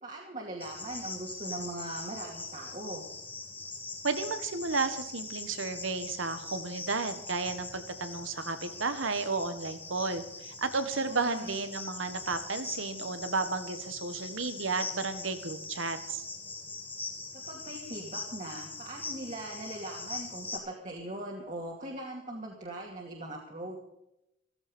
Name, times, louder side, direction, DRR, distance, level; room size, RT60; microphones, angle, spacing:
voice 1, 0.0-3.1 11.0-11.6 17.3-23.8, right 1 dB, 40° right, -1 dB, 2.4 m, -40 dB
Cricket, 0.6-20.6, left 3 dB, 10° left, 2.7 m, -42 dB
voice 2, 4.0-16.2, right 4 dB, 80° right, 10 dB, 1.6 m, -33 dB
15.5 x 15.0 x 5.4 m, 0.86 s
head